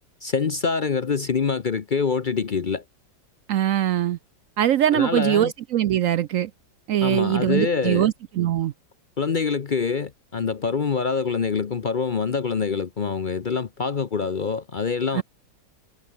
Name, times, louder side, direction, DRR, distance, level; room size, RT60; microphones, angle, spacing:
voice 1, 0.2-2.8 4.9-5.5 7.0-8.1 9.2-15.2, left 5 dB, 55° left, 0.5 m, -25 dB
voice 2, 3.5-4.2 4.6-6.5 6.9-8.7 15.1-15.2, right 11 dB, 70° right, 0.7 m, -22 dB
omnidirectional pair, 2.0 m